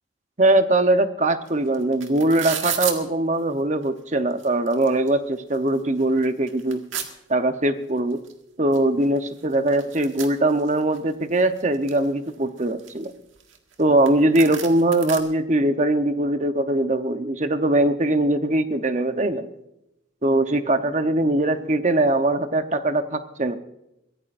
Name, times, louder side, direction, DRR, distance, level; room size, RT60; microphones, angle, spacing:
voice 1, 0.4-6.9 7.3-8.2 8.6-13.1 13.8-19.5 20.2-23.6, right 1 dB, 35° right, 8 dB, 0.9 m, -21 dB
sound 1, 1.5-1.6 1.7-3.0 3.8-3.9 4.3-5.1 5.5-5.6 6.0-7.1 8.3-8.4 8.7-8.8 9.0-11.0 11.4-12.1 12.6-13.8 14.1-14.2 14.4-15.2, right 9 dB, 80° right, 1.8 m, -32 dB
23.0 x 16.5 x 2.6 m, 0.86 s
head